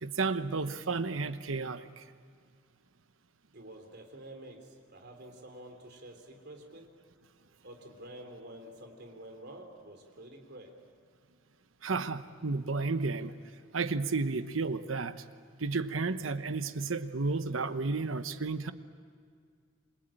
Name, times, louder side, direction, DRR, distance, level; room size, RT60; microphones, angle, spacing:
voice 1, 0.0-2.0 11.8-13.3 13.7-15.2 15.6-18.7, right 3 dB, 80° right, 11 dB, 1.1 m, -32 dB
voice 2, 3.5-6.9 7.6-10.7, right 1 dB, 55° right, 4 dB, 3.6 m, -49 dB
28.0 x 22.0 x 8.9 m, 2.1 s
head